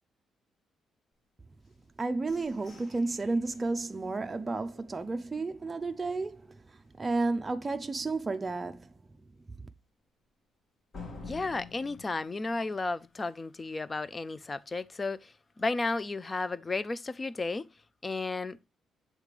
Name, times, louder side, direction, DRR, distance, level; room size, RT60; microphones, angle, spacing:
sound 1, 1.6-5.5 6.0-6.1 6.5-6.9 7.2-7.3 7.8-7.9 10.9-13.6, left 4 dB, 50° left, 2.1 m, -50 dB
voice 1, 2.0-6.5 7.0-8.9, right 3 dB, 25° right, 0.5 m, -32 dB
voice 2, 11.2-17.7 18.0-18.7, left 3 dB, 25° left, 0.5 m, -33 dB
7.4 x 3.2 x 5.0 m
cardioid pair, 90°, 0 cm